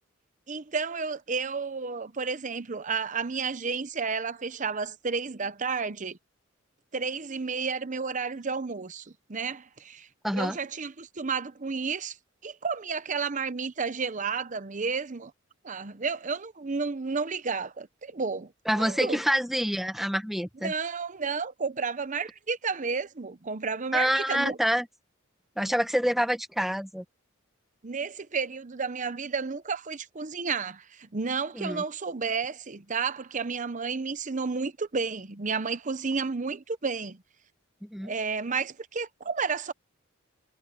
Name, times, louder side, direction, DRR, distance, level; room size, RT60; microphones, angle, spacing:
voice 1, 0.5-6.2 6.9-12.2 12.4-15.3 15.6-19.2 20.6-24.6 27.8-37.2 38.0-39.7, right 5 dB, 40° right, 0.8 m, -32 dB
voice 2, 10.2-10.6 18.7-20.7 23.9-24.9 25.6-27.0 31.5-31.8 37.8-38.1, equal, ahead, 1.1 m, -27 dB
head